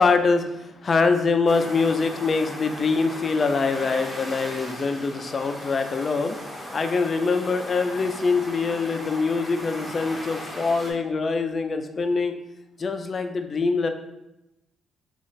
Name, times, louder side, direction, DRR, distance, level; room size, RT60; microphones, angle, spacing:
voice 1, 0.0-6.4 6.7-12.4 12.8-13.9, left 4 dB, 40° left, 8 dB, 0.4 m, -24 dB
sound 1, 1.5-10.9, equal, 5° left, 0.7 m, -37 dB
3.1 x 2.4 x 3.9 m, 0.92 s
cardioid pair, 90°, 0 cm